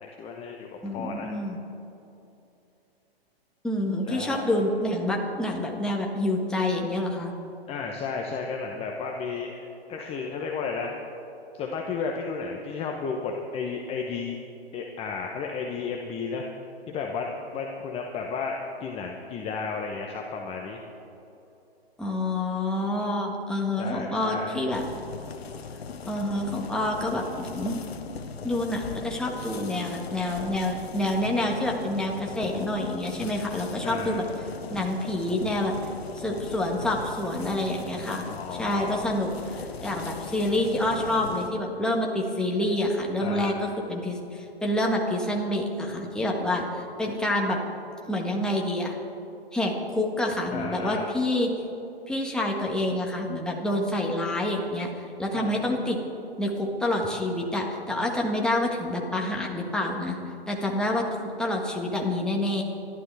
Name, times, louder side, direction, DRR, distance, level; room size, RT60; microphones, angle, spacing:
voice 1, 0.0-1.3 4.0-4.6 7.7-9.6 9.9-11.0 11.5-14.4 14.7-16.5 16.9-20.8 23.8-24.6 33.8-34.2 38.3-39.1 43.2-43.7 50.5-51.0 55.3-55.8, left 5 dB, 20° left, 1 dB, 1.0 m, -33 dB
voice 2, 0.8-1.6 3.6-7.3 22.0-24.8 26.1-27.8 28.4-34.3 34.7-35.7 36.1-38.2 38.5-47.6 48.1-48.9 49.5-51.5 52.1-56.0 56.4-60.2 60.5-61.0 61.4-62.6, left 1 dB, ahead, -1 dB, 1.6 m, -27 dB
sound 1, 24.7-41.5, left 5 dB, 75° left, 1.2 m, -39 dB
27.0 x 12.0 x 3.5 m, 2.9 s
hypercardioid pair, 130°, 31 cm